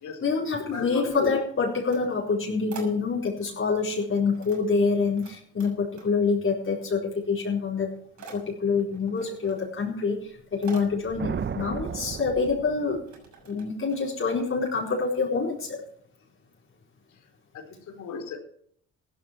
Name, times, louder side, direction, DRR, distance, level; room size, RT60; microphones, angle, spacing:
voice 1, 0.2-7.9 8.3-10.2 10.5-13.0 13.5-15.8, left 4 dB, 45° left, -3 dB, 4.4 m, -26 dB
voice 2, 0.7-1.3 17.5-18.4, left 5 dB, 70° left, 4 dB, 4.3 m, -33 dB
sound 1, 1.7-3.5 3.9-5.3 5.6-6.4 6.7-7.4 7.6-14.4, right 5 dB, 70° right, 6.6 m, -48 dB
sound 2, 10.8-13.3, right 7 dB, 40° right, 0.8 m, -35 dB
15.5 x 13.0 x 4.6 m, 0.63 s
cardioid pair, 90°, 30 cm